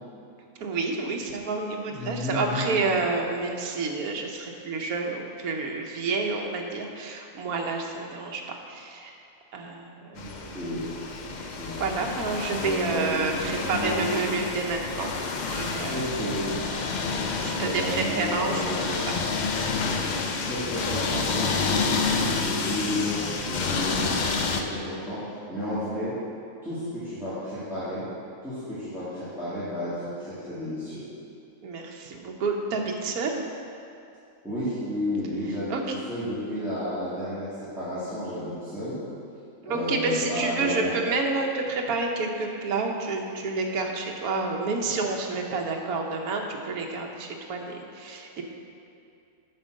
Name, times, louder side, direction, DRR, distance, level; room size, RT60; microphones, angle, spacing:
voice 1, 0.6-9.2 9.5-10.5 11.4-11.5 11.8-15.1 15.5-16.3 17.4-19.2 31.6-33.5 35.7-35.8 39.6-48.4, right 3 dB, 80° right, 1 dB, 1.3 m, -29 dB
voice 2, 1.9-2.7 10.1-10.8 11.3-11.8 12.5-14.0 15.9-16.4 17.4-19.0 19.8-25.2 25.5-26.2 26.6-28.0 28.4-31.1 34.4-35.8 36.1-39.0 39.7-40.9, left 1 dB, ahead, -14 dB, 2.1 m, -32 dB
sound 1, 10.2-24.6, left 4 dB, 80° left, 0.4 m, -29 dB
9.0 x 4.4 x 6.3 m, 2.5 s
omnidirectional pair, 1.5 m